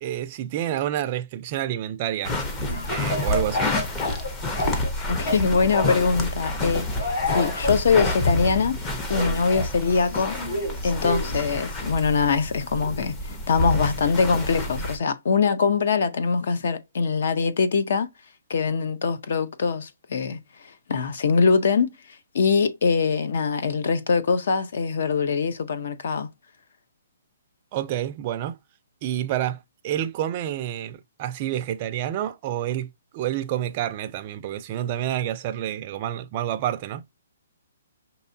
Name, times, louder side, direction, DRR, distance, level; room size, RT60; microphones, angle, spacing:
voice 1, 0.0-2.4 2.9-3.7 27.7-28.6 29.0-37.0, right 11 dB, 30° right, 0.3 m, -28 dB
sound 1, 2.2-15.0, left 1 dB, 15° left, 0.6 m, -29 dB
Speech / Cough, 2.7-4.9 5.2-6.1 7.0-8.2 9.1-11.4, left 1 dB, 45° left, 3.0 m, -30 dB
voice 2, 5.1-8.8 9.1-10.4 10.8-18.1 18.5-26.3, left 5 dB, 60° left, 0.6 m, -23 dB
5.3 x 2.8 x 2.6 m
hypercardioid pair, 165°, 0 cm